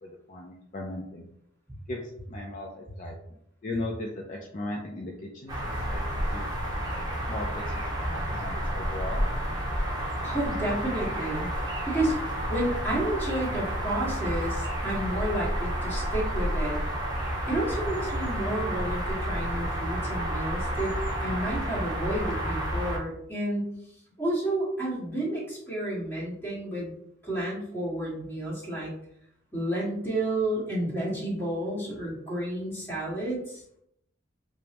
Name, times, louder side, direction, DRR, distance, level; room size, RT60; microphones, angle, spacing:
voice 1, 0.0-1.3 1.9-2.0 2.3-3.2 3.6-6.5 7.3-9.2, left 2 dB, 40° left, -1 dB, 0.5 m, -37 dB
Woody field at winter, 5.5-23.0, equal, 20° right, 0.8 m, -30 dB
voice 2, 10.2-11.5 11.9-12.1 12.5-16.8 17.5-20.9 21.2-23.7 24.2-26.9 27.2-28.9 29.5-33.6, right 1 dB, 10° left, -6 dB, 1.5 m, -31 dB
5.0 x 2.1 x 2.9 m, 0.73 s
head